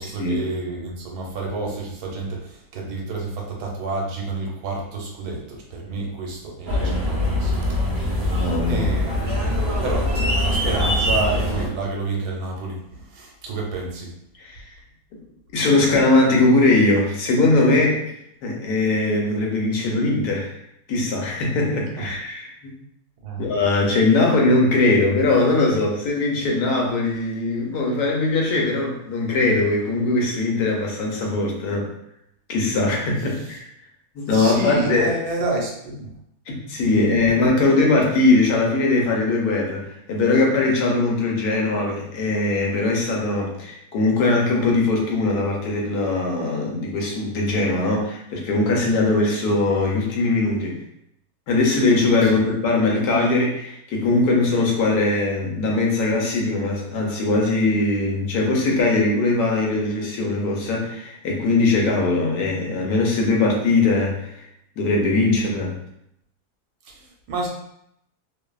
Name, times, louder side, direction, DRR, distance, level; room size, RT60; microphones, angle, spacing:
voice 1, 0.0-14.1 22.0-22.1 23.2-23.4 34.3-36.1 52.2-52.4 66.9-67.5, right 3 dB, 85° right, -1 dB, 1.2 m, -29 dB
sound 1, 6.7-11.7, left 1 dB, 50° right, 0.5 m, -23 dB
voice 2, 8.3-8.9 14.4-14.6 15.5-18.1 18.4-20.6 20.9-22.7 23.4-31.9 32.5-33.7 34.2-35.1 36.5-50.8 51.5-64.3 64.8-65.8, left 2 dB, 85° left, -1 dB, 1.2 m, -20 dB
2.5 x 2.4 x 2.3 m, 0.75 s
omnidirectional pair, 1.7 m